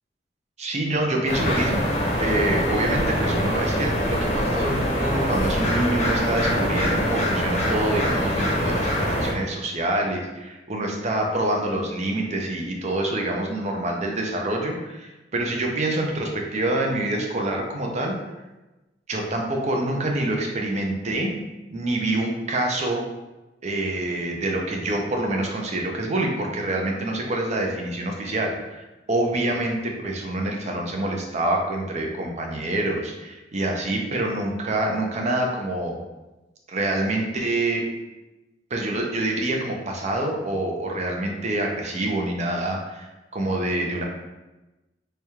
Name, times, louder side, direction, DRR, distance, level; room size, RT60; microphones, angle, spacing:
voice 1, 0.6-1.9 2.2-18.1 19.1-21.3 21.7-23.0 23.6-36.0 36.7-37.8 38.7-44.0, right 1 dB, 40° right, 1 dB, 0.6 m, -26 dB
sound 1, 1.3-9.3, equal, 40° left, 0.7 m, -24 dB
3.3 x 2.3 x 4.2 m, 1.1 s
head